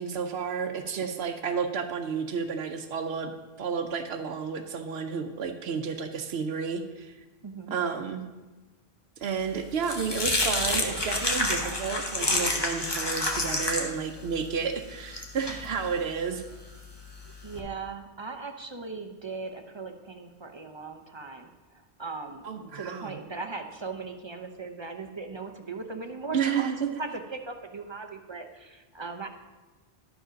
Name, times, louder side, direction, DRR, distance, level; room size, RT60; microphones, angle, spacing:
voice 1, 0.0-3.3 3.6-7.1 7.7-8.2 9.2-16.4 22.4-23.2 26.3-26.9, right 6 dB, 80° right, 7 dB, 0.9 m, -31 dB
voice 2, 7.4-7.8 17.4-29.3, right 4 dB, 30° right, 5 dB, 0.6 m, -39 dB
sound 1, 9.3-17.6, left 2 dB, 25° left, 0.9 m, -30 dB
12.0 x 4.9 x 5.1 m, 1.2 s
omnidirectional pair, 1.0 m